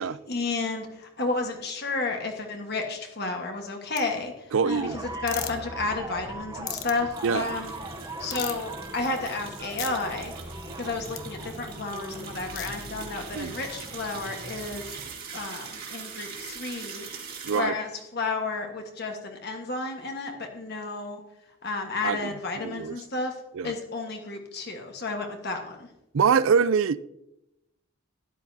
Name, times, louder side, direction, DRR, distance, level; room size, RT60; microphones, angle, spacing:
voice 1, 0.3-4.3 4.6-7.7 8.2-10.3 10.8-15.0 15.3-17.1 17.5-21.2 21.6-23.3 23.6-25.9, left 3 dB, 50° left, 1.4 m, -32 dB
sound 1, 4.0-4.1 5.3-5.5 6.7-6.9 8.3-8.7 9.8-9.9 11.2-11.3 12.6-12.7, left 10 dB, 75° left, 1.0 m, -34 dB
voice 2, 4.5-5.0 7.2-7.5 13.3-13.6 17.4-17.8 22.0-22.4 22.6-23.0 23.5-23.7 26.1-27.0, right 6 dB, 70° right, 0.4 m, -24 dB
sound 2, 4.7-15.1, right 2 dB, 20° right, 0.8 m, -40 dB
sound 3, 6.0-6.1 6.3-6.4 6.9-17.6, right 5 dB, 45° right, 2.0 m, -42 dB
12.5 x 10.5 x 2.8 m
head